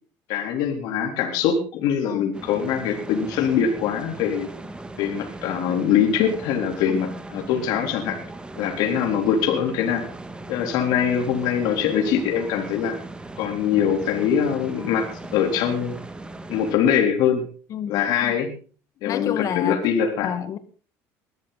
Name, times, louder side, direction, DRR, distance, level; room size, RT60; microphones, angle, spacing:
voice 1, 0.3-4.5 5.0-8.2 8.6-10.0 10.5-12.9 13.4-16.0 16.5-17.5 17.9-18.5 19.0-20.3, left 8 dB, 70° left, 3 dB, 3.8 m, -23 dB
sound 1, 2.3-16.8, right 2 dB, 15° right, 2.3 m, -38 dB
voice 2, 17.7-18.3 19.0-19.8 20.2-20.6, left 9 dB, 50° left, 13 dB, 2.0 m, -29 dB
20.5 x 13.5 x 4.2 m, 0.39 s
supercardioid pair, 105°, 7 cm